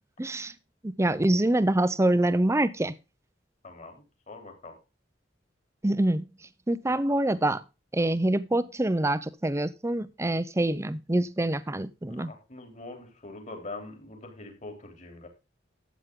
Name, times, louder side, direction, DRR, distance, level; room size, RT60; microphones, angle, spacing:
voice 1, 0.2-0.5 0.8-2.9 5.8-6.2 6.7-7.6 7.9-12.3, right 1 dB, 15° right, 0.6 m, -25 dB
voice 2, 3.6-4.8 12.1-15.3, left 2 dB, 40° left, 3.3 m, -43 dB
12.5 x 8.2 x 3.7 m
head